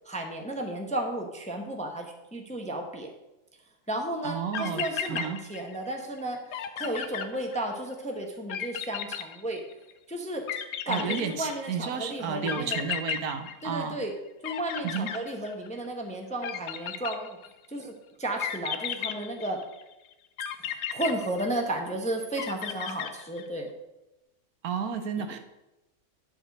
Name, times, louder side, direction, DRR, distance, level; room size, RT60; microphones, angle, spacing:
voice 1, 0.0-3.1 3.9-9.6 10.1-10.5 10.8-12.8 13.6-14.1 14.4-17.4 17.7-17.9 18.2-19.6 20.6-23.7, right 1 dB, 5° left, 3 dB, 0.7 m, -33 dB
voice 2, 4.2-5.4 10.9-14.0 14.8-15.1 24.6-25.4, right 6 dB, 75° right, 8 dB, 1.3 m, -32 dB
sound 1, 4.3-4.4 4.5-5.9 6.2-6.3 6.5-7.9 8.5-9.9 10.5-11.8 12.5-14.1 14.4-15.9 16.4-17.7 18.4-19.8 20.4-21.9 22.4-23.6, left 9 dB, 75° left, 1.1 m, -34 dB
10.5 x 4.4 x 6.4 m, 0.97 s
omnidirectional pair, 1.6 m